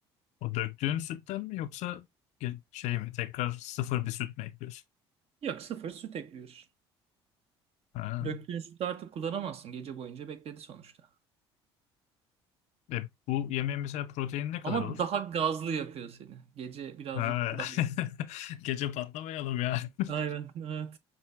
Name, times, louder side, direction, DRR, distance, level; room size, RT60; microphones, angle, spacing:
voice 1, 0.4-2.1 2.4-4.8 7.9-8.4 12.9-15.0 17.1-20.1, left 13 dB, 60° left, 0.5 m, -33 dB
voice 2, 5.4-6.7 8.2-10.9 14.6-17.8 20.1-21.0, right 8 dB, 50° right, 0.8 m, -35 dB
6.0 x 2.8 x 2.3 m
hypercardioid pair, 60°, 13 cm